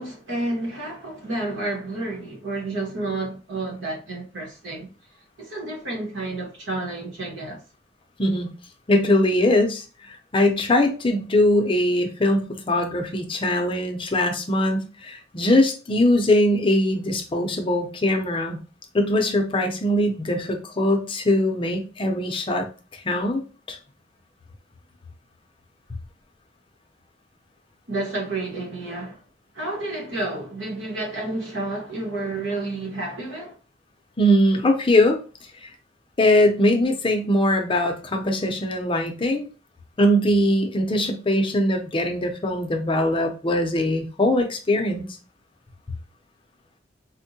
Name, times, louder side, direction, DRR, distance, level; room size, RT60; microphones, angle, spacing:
voice 1, 0.0-4.9 5.4-7.6 27.9-29.2 29.5-33.6, right 2 dB, 90° right, 1.2 m, -30 dB
voice 2, 8.9-18.6 18.9-22.7 22.9-23.4 23.7-23.8 34.2-35.2 35.6-35.7 36.2-39.5 40.0-45.1, left 1 dB, 30° left, 0.5 m, -21 dB
4.3 x 2.1 x 2.7 m
head